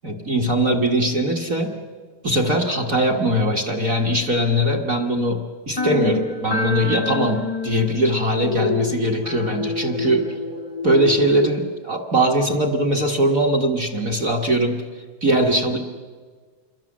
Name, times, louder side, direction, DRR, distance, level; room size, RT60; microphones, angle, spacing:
voice 1, 0.0-1.8 2.2-10.3 10.8-14.8 15.2-15.8, right 1 dB, 45° right, 3 dB, 1.1 m, -21 dB
sound 1, 5.8-11.3, left 4 dB, 15° left, 0.8 m, -27 dB
27.5 x 22.5 x 7.4 m, 1.5 s
omnidirectional pair, 3.8 m